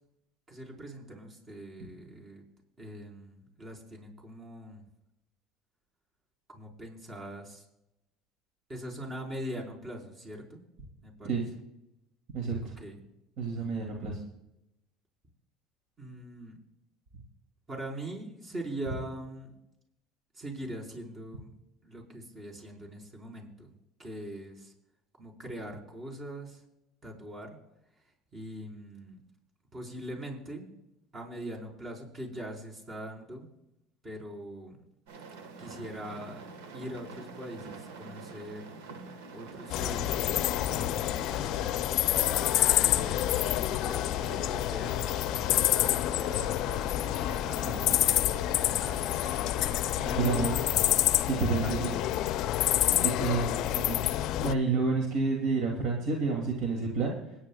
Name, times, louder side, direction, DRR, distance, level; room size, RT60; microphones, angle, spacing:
voice 1, 0.5-2.4 2.8-4.8 6.5-7.6 8.7-10.6 11.0-11.4 12.8-13.0 13.5-13.8 16.0-16.6 17.7-19.6 20.3-21.5 21.8-23.7 24.0-24.7 25.2-26.6 27.0-27.6 28.0-28.1 28.3-29.2 29.7-30.7 31.1-33.5 34.0-34.8 35.6-36.5 36.7-38.7 39.3-41.6 42.4-45.0 45.3-46.7 47.2-50.6 51.6-52.0 53.1-53.5 54.7-54.8, right 1 dB, 30° right, 0 dB, 4.3 m, -42 dB
voice 2, 12.3-12.7 13.4-14.2 47.7-48.0 50.0-50.6 51.3-51.9 52.9-54.0 54.4-57.2, right 4 dB, 60° right, 0 dB, 2.6 m, -30 dB
sound 1, 35.1-50.7, right 4 dB, 80° right, 1.4 m, -47 dB
sound 2, 39.7-54.5, left 13 dB, 60° left, 0.5 m, -28 dB
26.0 x 9.9 x 2.3 m, 0.86 s
hypercardioid pair, 80°, 0 cm